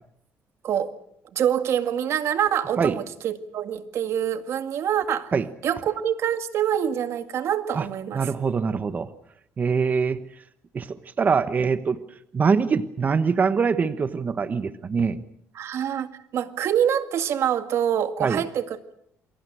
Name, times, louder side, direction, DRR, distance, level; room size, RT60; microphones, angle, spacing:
voice 1, 0.6-1.0 1.3-5.3 5.6-8.2 15.6-16.1 16.3-18.9, right 9 dB, 65° right, 9 dB, 2.0 m, -25 dB
voice 2, 8.1-9.1 9.6-10.2 10.7-12.0 12.3-15.2 18.2-18.4, right 5 dB, 35° right, 11 dB, 1.2 m, -23 dB
28.5 x 23.0 x 6.3 m, 0.70 s
cardioid pair, 120°, 5 cm